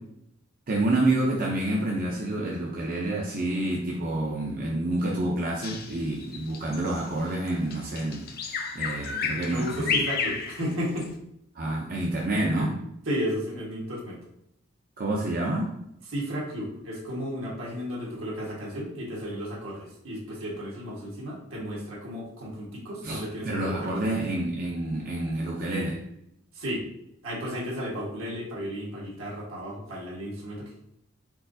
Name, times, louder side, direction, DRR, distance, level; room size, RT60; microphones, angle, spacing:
voice 1, 0.7-10.0 11.5-12.8 15.0-15.7 23.0-26.0, right 1 dB, 45° right, -3 dB, 0.6 m, -28 dB
Bird vocalization bird call bird song, 5.6-11.1, left 5 dB, 50° left, 0.6 m, -32 dB
voice 2, 9.3-11.1 13.0-14.2 16.1-24.2 26.5-26.8 27.2-30.8, equal, 75° right, -4 dB, 1.5 m, -33 dB
4.6 x 4.0 x 2.6 m, 0.78 s
head